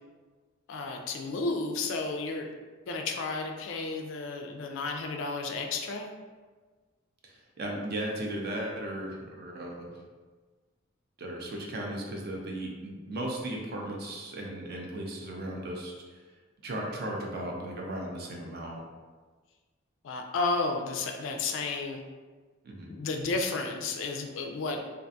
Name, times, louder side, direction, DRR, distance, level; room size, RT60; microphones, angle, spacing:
voice 1, 0.7-2.5 2.9-6.1 20.0-22.0 22.9-24.8, left 3 dB, 65° left, 4 dB, 0.3 m, -32 dB
voice 2, 7.2-10.0 11.2-16.3 16.6-18.8 22.6-22.9, right 1 dB, 50° right, -1 dB, 0.4 m, -36 dB
2.4 x 2.3 x 2.5 m, 1.4 s
head